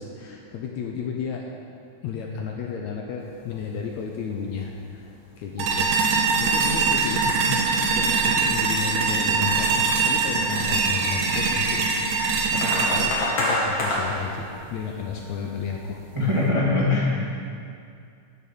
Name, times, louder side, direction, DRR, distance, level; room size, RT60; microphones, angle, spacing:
voice 1, 0.0-1.4 2.0-5.1 5.4-5.9 6.4-11.9 12.5-16.0, left 6 dB, 75° left, 0 dB, 1.7 m, -32 dB
sound 1, 3.2-3.7 4.0-4.1 4.4-4.7 4.9-5.3 5.5-6.1 6.6-6.7 7.4-7.8 8.5-9.4 9.7-14.2, left 1 dB, 50° left, 2.7 m, -29 dB
sound 2, 5.6-14.6, right 4 dB, 75° right, 2.2 m, -23 dB
voice 2, 16.1-17.2, left 2 dB, 30° right, -6 dB, 0.5 m, -21 dB
9.5 x 6.5 x 6.8 m, 2.4 s
omnidirectional pair, 3.9 m